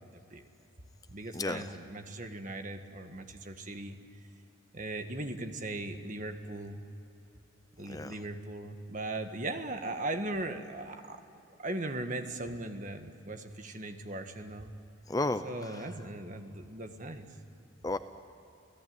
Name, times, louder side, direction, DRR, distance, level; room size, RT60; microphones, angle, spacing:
voice 1, 0.1-0.4 1.1-4.0 4.7-6.8 7.8-11.2 11.6-14.7 15.4-17.3, right 2 dB, 40° right, 6 dB, 1.6 m, -38 dB
voice 2, 15.1-15.9 17.8-18.0, left 2 dB, 15° left, 10 dB, 0.6 m, -33 dB
28.5 x 17.5 x 9.5 m, 2.8 s
head